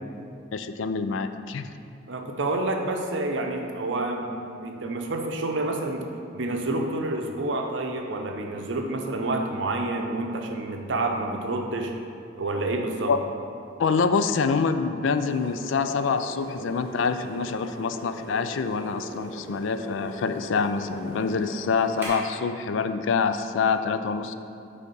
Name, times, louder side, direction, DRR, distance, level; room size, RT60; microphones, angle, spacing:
voice 1, 0.5-1.7 13.1-13.2 13.8-24.3, left 5 dB, 70° left, 9 dB, 0.4 m, -26 dB
voice 2, 2.1-6.1 6.3-11.9 12.4-13.1, right 2 dB, 65° right, 3 dB, 0.7 m, -28 dB
sound 1, 15.1-22.1, right 1 dB, 10° right, 1.7 m, -41 dB
8.4 x 3.5 x 5.3 m, 2.5 s
head